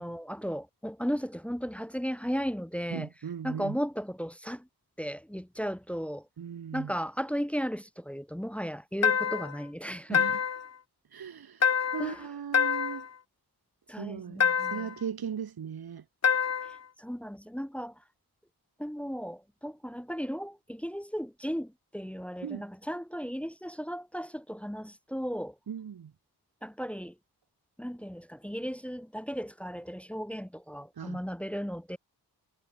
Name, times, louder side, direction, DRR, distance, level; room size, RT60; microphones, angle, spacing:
voice 1, 0.0-3.1 3.4-4.7 5.0-6.2 6.7-10.2 12.0-12.3 13.9-14.9 17.0-17.9 18.8-25.5 26.6-27.1 27.8-32.0, equal, 5° left, 1.5 m, -35 dB
voice 2, 2.9-3.8 6.4-6.9 10.1-10.4 11.1-11.6 11.9-13.1 14.0-14.4 14.7-16.0 22.4-22.7 25.7-26.1 31.0-31.2, right 8 dB, 65° right, 1.7 m, -37 dB
sound 1, 9.0-9.6 10.1-10.7 11.6-12.2 12.5-13.1 14.4-14.9 16.2-16.8, left 7 dB, 40° left, 0.7 m, -26 dB
wide cardioid pair, 90°, 39 cm